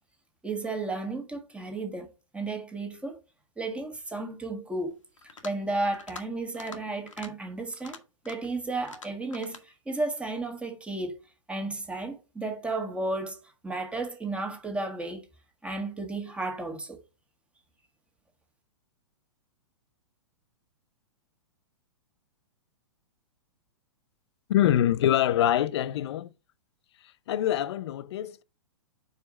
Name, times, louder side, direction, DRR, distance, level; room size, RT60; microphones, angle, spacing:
voice 1, 0.4-3.2 3.6-5.0 5.4-8.0 8.2-11.2 11.5-15.3 15.6-17.0, right 2 dB, 5° right, 1.6 m, -33 dB
sound 1, 5.2-5.6 5.9-6.2 6.5-6.8 7.1-7.3 7.7-8.5 8.8-9.6, left 4 dB, 85° left, 1.5 m, -45 dB
voice 2, 24.5-26.3 27.3-28.4, left 11 dB, 60° left, 0.6 m, -24 dB
4.9 x 4.6 x 6.1 m
hypercardioid pair, 115°, 16 cm